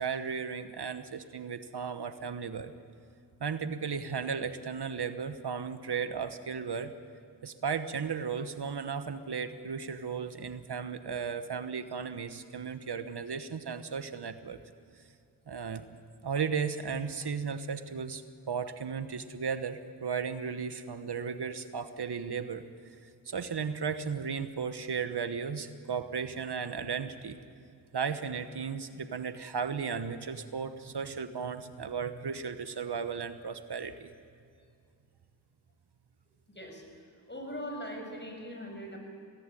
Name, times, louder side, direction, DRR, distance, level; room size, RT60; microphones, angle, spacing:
voice 1, 0.0-2.7 3.4-6.9 7.4-14.6 15.5-15.9 16.2-22.6 23.0-27.4 27.9-34.1, right 6 dB, 70° right, 10 dB, 1.2 m, -35 dB
voice 2, 37.3-39.0, equal, 25° left, 2 dB, 6.4 m, -40 dB
23.0 x 18.0 x 9.9 m, 2.4 s
cardioid pair, 55°, 42 cm